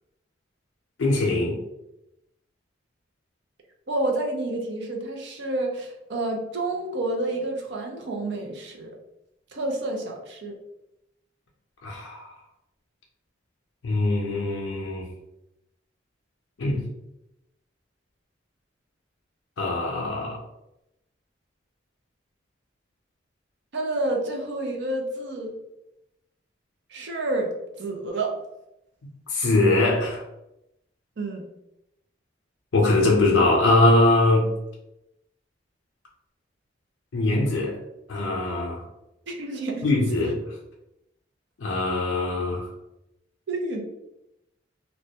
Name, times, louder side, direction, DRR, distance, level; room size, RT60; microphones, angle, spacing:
voice 1, 1.0-1.6 11.8-12.3 13.8-15.1 16.6-16.8 19.6-20.4 29.3-30.2 32.7-34.5 37.1-37.8 38.1-38.8 39.8-40.4 41.6-42.7, left 2 dB, 80° left, -2 dB, 0.5 m, -22 dB
voice 2, 3.9-8.9 9.5-10.5 23.7-25.5 26.9-27.5 27.8-28.3 31.2-31.4 39.3-39.8 43.5-43.8, right 2 dB, 60° right, 1 dB, 0.5 m, -29 dB
2.3 x 2.1 x 2.7 m, 0.88 s
head